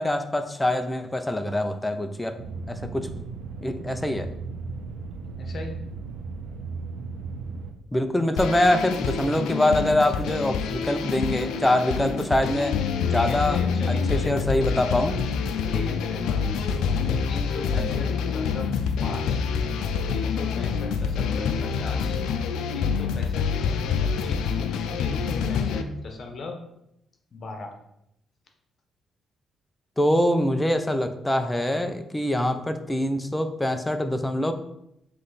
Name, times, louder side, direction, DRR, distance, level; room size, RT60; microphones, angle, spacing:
voice 1, 0.0-2.4 2.7-3.3 3.6-4.3 7.9-12.8 13.0-13.6 13.9-15.2 17.8-18.0 30.0-34.5, left 1 dB, 10° left, 7 dB, 0.7 m, -24 dB
sound 1, 2.4-7.7, right 4 dB, 90° right, 0.8 m, -36 dB
voice 2, 5.4-5.8 10.0-10.4 13.1-14.9 15.7-16.4 16.9-18.7 19.0-19.4 20.1-22.2 22.7-26.6 27.3-27.7, left 3 dB, 50° left, 4 dB, 1.2 m, -38 dB
sound 2, 8.4-25.8, left 6 dB, 85° left, 0.5 m, -26 dB
7.5 x 3.3 x 4.1 m, 0.78 s
cardioid pair, 90°, 0 cm